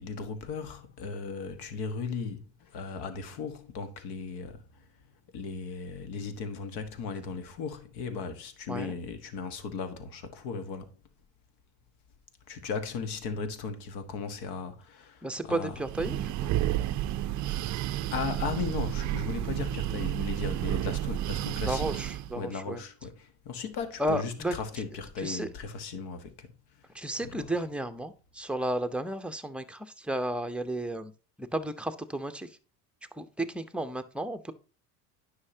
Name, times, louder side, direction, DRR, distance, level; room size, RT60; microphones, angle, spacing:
voice 1, 0.0-4.9 5.3-11.0 12.5-15.8 18.1-21.9 22.3-26.5 27.2-27.5, left 5 dB, 60° left, 1.5 m, -37 dB
voice 2, 15.2-16.5 21.7-22.8 24.0-24.5 25.2-25.5 26.9-31.1 31.5-32.5 33.2-34.5, right 1 dB, 5° right, 0.7 m, -33 dB
Breathing, 15.7-22.4, right 13 dB, 40° right, 0.5 m, -31 dB
9.6 x 5.8 x 2.8 m
supercardioid pair, 85°, 44 cm